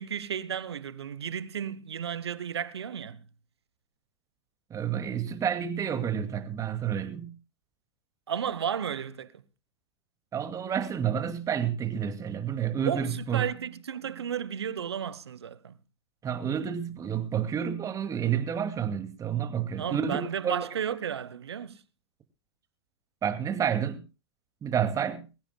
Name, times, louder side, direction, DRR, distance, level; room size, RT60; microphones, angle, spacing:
voice 1, 0.0-3.3 8.3-9.4 12.8-15.8 19.8-21.8, right 8 dB, 75° right, 1.1 m, -33 dB
voice 2, 4.7-7.4 10.3-13.4 16.2-20.2 20.4-20.6 23.2-24.0 24.6-25.3, right 8 dB, 25° right, 2.4 m, -29 dB
23.5 x 15.0 x 2.3 m
figure-of-eight pair, 100°, 14 cm